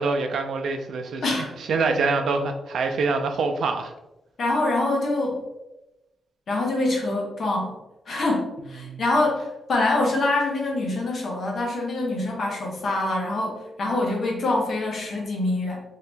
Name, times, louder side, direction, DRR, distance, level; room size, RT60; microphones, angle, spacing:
voice 1, 0.0-3.9 8.8-9.0, right 4 dB, 70° right, 5 dB, 0.4 m, -25 dB
voice 2, 1.2-1.5 4.4-5.4 6.5-7.7 8.1-15.8, left 2 dB, 50° left, -1 dB, 0.9 m, -25 dB
2.8 x 2.7 x 3.3 m, 0.94 s
wide cardioid pair, 155°, 0 cm